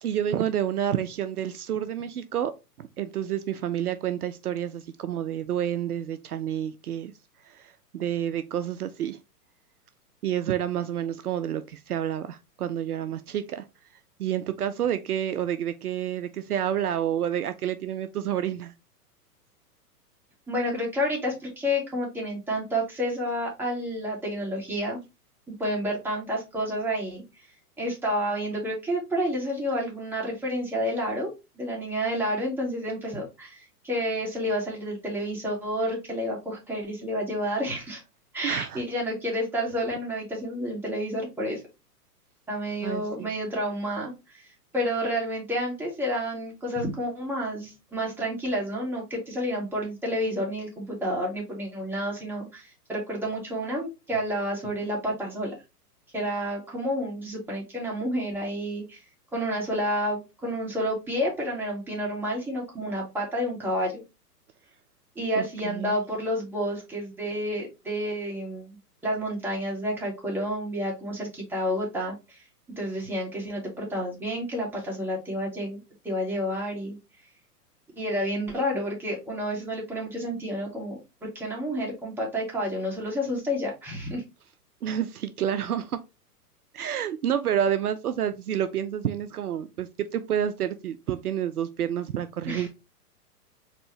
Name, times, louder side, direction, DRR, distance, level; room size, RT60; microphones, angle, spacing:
voice 1, 0.0-2.5 2.8-7.1 7.4-9.2 10.2-13.6 14.2-18.7 38.4-38.8 42.8-43.3 65.4-66.0 84.8-86.0 86.7-92.7, right 10 dB, 70° right, 0.6 m, -29 dB
voice 2, 20.5-25.0 25.6-27.5 27.8-31.3 31.6-38.0 38.3-41.6 42.5-44.5 44.7-55.5 56.1-59.0 59.3-64.0 65.2-68.8 69.0-72.4 72.8-75.8 76.0-77.0 78.0-84.2 92.5-92.7, equal, 5° right, 1.9 m, -30 dB
4.3 x 3.2 x 3.1 m
figure-of-eight pair, 115°, 48 cm